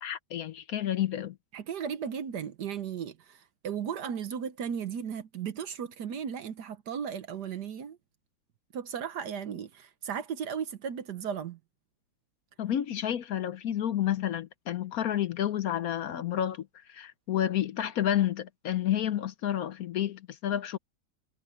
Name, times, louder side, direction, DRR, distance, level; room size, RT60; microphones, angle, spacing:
voice 1, 0.0-1.4 12.6-20.8, left 11 dB, 65° left, 1.0 m, -30 dB
voice 2, 1.5-8.0 8.7-11.6, right 7 dB, 65° right, 1.5 m, -36 dB
omnidirectional pair, 2.0 m